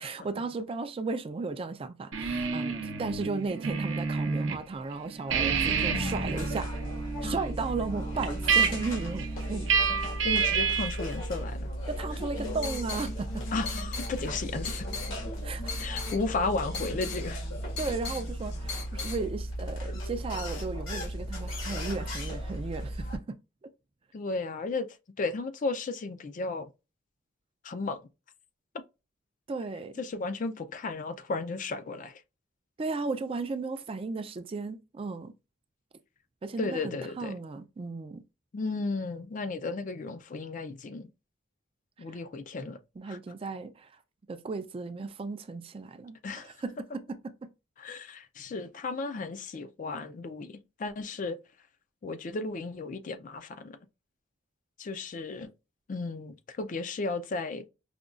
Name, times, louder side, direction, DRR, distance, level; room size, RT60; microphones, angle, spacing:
voice 1, 0.0-6.7 7.2-9.9 11.9-13.4 15.4-15.9 17.8-23.7 29.5-30.0 32.8-35.3 36.4-38.2 42.1-42.2 43.0-44.0 44.3-47.5, right 3 dB, 30° right, 0.3 m, -35 dB
sound 1, 2.1-4.6 4.9-11.1, right 5 dB, 70° right, 0.7 m, -29 dB
sound 2, 5.3-23.2, equal, 80° left, 1.5 m, -36 dB
voice 2, 10.2-11.7 13.5-14.9 15.8-17.4 24.1-24.9 25.2-26.7 27.6-28.0 30.0-32.2 36.6-37.3 38.5-41.1 42.0-42.8 43.1-43.2 46.2-46.5 47.8-51.4 52.0-53.8 54.8-55.5 55.9-57.7, left 3 dB, 40° left, 0.4 m, -34 dB
sound 3, 12.1-19.2, left 4 dB, 60° left, 1.1 m, -40 dB
5.0 x 2.2 x 2.4 m
head